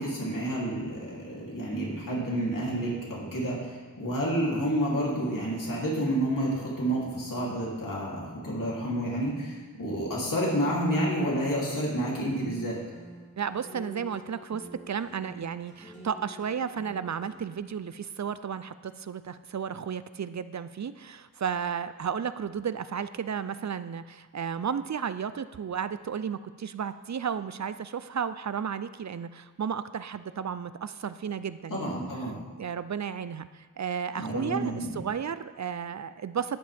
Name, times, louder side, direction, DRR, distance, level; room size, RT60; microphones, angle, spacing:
voice 1, 0.0-12.8 31.7-32.4 34.2-35.0, right 1 dB, 85° left, -5 dB, 3.1 m, -29 dB
sound 1, 12.4-17.3, equal, 20° left, 2.9 m, -48 dB
voice 2, 13.4-32.0 32.6-36.6, right 7 dB, 60° right, 13 dB, 0.5 m, -33 dB
12.0 x 10.5 x 3.5 m, 1.4 s
wide cardioid pair, 70°, 32 cm